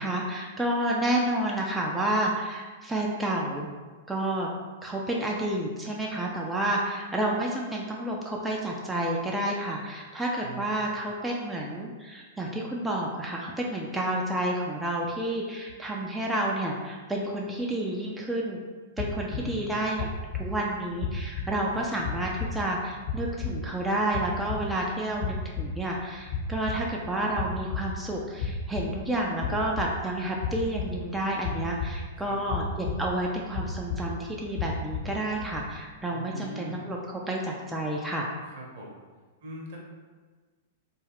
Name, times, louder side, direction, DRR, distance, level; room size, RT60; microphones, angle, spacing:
voice 1, 0.0-3.7 4.1-4.5 4.8-18.6 19.0-20.1 20.3-38.3, right 1 dB, 5° right, -2 dB, 0.3 m, -30 dB
sound 1, 19.0-35.6, left 4 dB, 60° left, 0.9 m, -35 dB
voice 2, 19.3-19.8 21.7-21.9 32.2-32.4 36.1-36.9 38.5-39.0 39.4-39.8, right 2 dB, 55° right, -2 dB, 0.7 m, -41 dB
2.3 x 2.2 x 3.3 m, 1.4 s
figure-of-eight pair, 100°, 0 cm